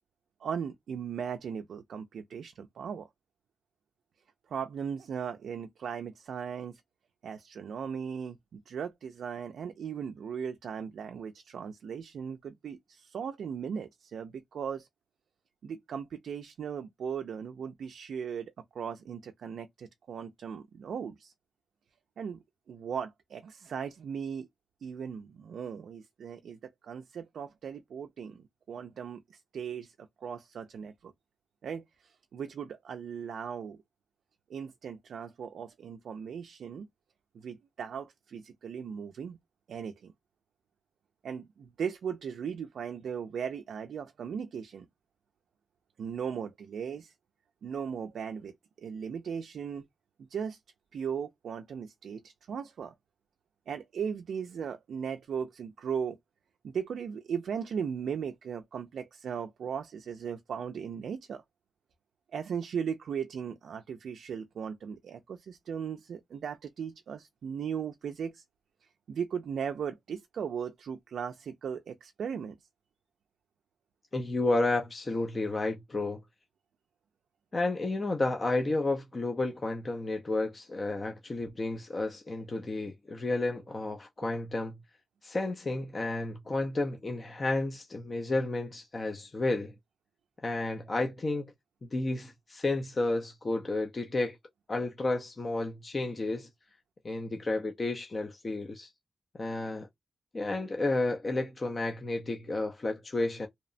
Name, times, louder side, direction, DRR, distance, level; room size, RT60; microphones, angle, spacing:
voice 1, 0.4-3.1 4.5-6.8 7.2-14.9 15.6-21.3 22.2-24.5 24.8-31.1 31.6-33.8 34.5-36.9 37.3-39.4 39.7-40.1 41.2-44.9 46.0-47.1 47.6-49.8 50.2-50.6 50.9-52.9 53.7-56.2 56.6-61.4 62.3-68.4 69.1-72.6, right 7 dB, 85° right, 0.3 m, -37 dB
voice 2, 74.1-76.2 77.5-84.8 85.2-89.7 90.4-91.5 91.8-94.4 94.7-96.5 97.0-98.9 99.3-99.9 100.3-103.5, left 2 dB, 30° left, 0.4 m, -31 dB
2.8 x 2.0 x 2.4 m
wide cardioid pair, 130°, 0 cm